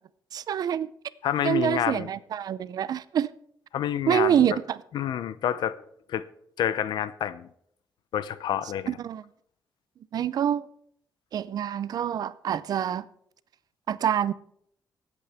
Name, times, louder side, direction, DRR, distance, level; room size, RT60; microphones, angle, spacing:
voice 1, 0.3-0.9 1.4-3.3 4.1-4.8 8.9-9.2 10.1-10.6 11.3-13.1 13.9-14.3, right 9 dB, 60° right, 0.5 m, -26 dB
voice 2, 1.2-2.1 3.7-4.5 4.9-5.8 6.1-6.2 6.6-7.5 8.1-8.9, left 10 dB, 90° left, 0.5 m, -28 dB
23.5 x 8.2 x 3.5 m
wide cardioid pair, 165°, 7 cm